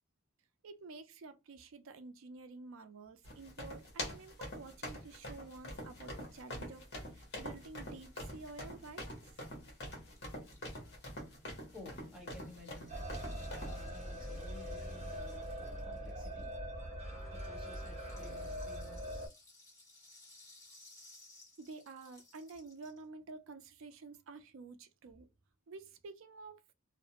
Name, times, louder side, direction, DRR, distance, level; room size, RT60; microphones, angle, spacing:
voice 1, 0.6-9.1 21.6-25.3 25.7-26.6, right 3 dB, 70° right, 0.4 m, -50 dB
sound 1, 3.2-13.8, left 1 dB, 55° left, 1.0 m, -45 dB
Rattle (instrument), 9.7-16.9 17.2-23.0, left 2 dB, 15° left, 1.3 m, -61 dB
voice 2, 11.7-13.0 13.6-16.5 17.3-19.3, left 2 dB, 5° right, 1.0 m, -55 dB
sound 2, 12.9-19.3, equal, 30° right, 0.9 m, -42 dB
2.4 x 2.1 x 2.8 m
head